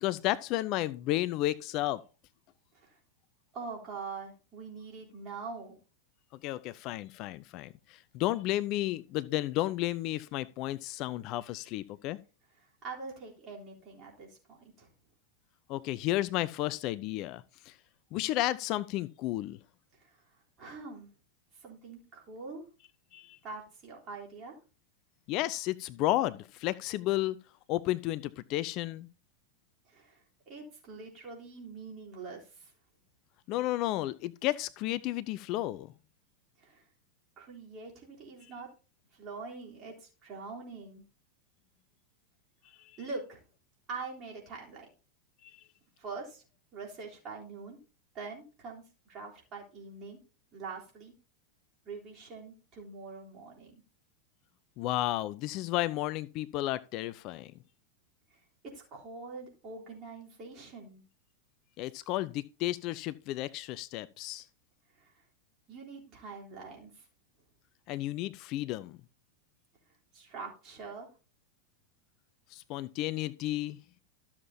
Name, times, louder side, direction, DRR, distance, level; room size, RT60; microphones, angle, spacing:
voice 1, 0.0-2.0 6.4-12.2 15.7-17.8 18.1-19.6 23.1-23.4 25.3-27.4 27.7-29.1 33.5-35.9 42.8-43.0 45.4-45.6 54.8-57.5 61.8-64.4 67.9-69.0 72.5-73.8, left 15 dB, 40° left, 0.4 m, -32 dB
voice 2, 3.5-5.8 12.8-14.9 20.0-20.2 20.6-21.1 21.6-22.7 23.4-24.5 29.9-32.7 36.6-36.8 37.4-38.7 39.1-41.0 43.0-43.4 43.9-44.9 46.0-46.4 46.7-47.8 48.1-50.2 50.5-51.1 51.9-53.8 58.3-58.4 58.7-61.0 65.0-65.1 65.7-67.0 70.1-71.1, right 4 dB, 30° right, 3.5 m, -44 dB
13.0 x 7.2 x 2.8 m
figure-of-eight pair, 90°, 0 cm